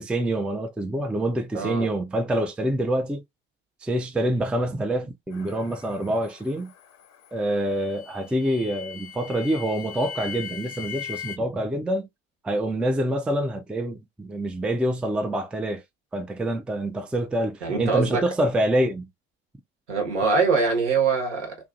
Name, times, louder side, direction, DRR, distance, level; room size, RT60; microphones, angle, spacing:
voice 1, 0.0-3.2 3.8-6.7 7.3-12.1 12.4-15.8 16.1-19.1, right 1 dB, 5° right, 0.4 m, -26 dB
voice 2, 1.5-1.9 17.6-18.2 19.9-21.6, right 4 dB, 75° right, 1.1 m, -23 dB
sound 1, 5.3-11.4, left 8 dB, 45° left, 0.6 m, -40 dB
2.7 x 2.5 x 2.5 m
figure-of-eight pair, 55°, 36 cm